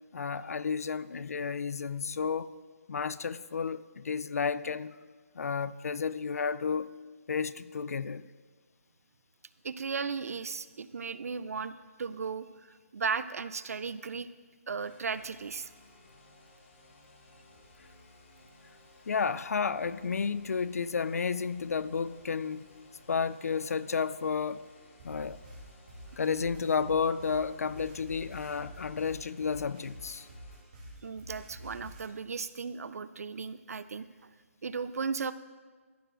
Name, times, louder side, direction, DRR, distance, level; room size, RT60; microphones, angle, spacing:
voice 1, 0.1-2.5 2.9-4.9 5.3-6.9 7.3-8.2 19.1-22.7 23.1-24.6 25.0-25.4 26.2-30.3, left 5 dB, 85° left, 0.4 m, -32 dB
voice 2, 9.6-14.3 14.7-15.7 31.0-34.1 34.6-35.3, right 5 dB, 85° right, 0.4 m, -36 dB
sound 1, 14.8-30.6, left 2 dB, 50° left, 1.7 m, -58 dB
sound 2, 25.0-32.0, equal, 35° right, 2.6 m, -49 dB
14.0 x 6.7 x 2.5 m
hypercardioid pair, 160°, 8 cm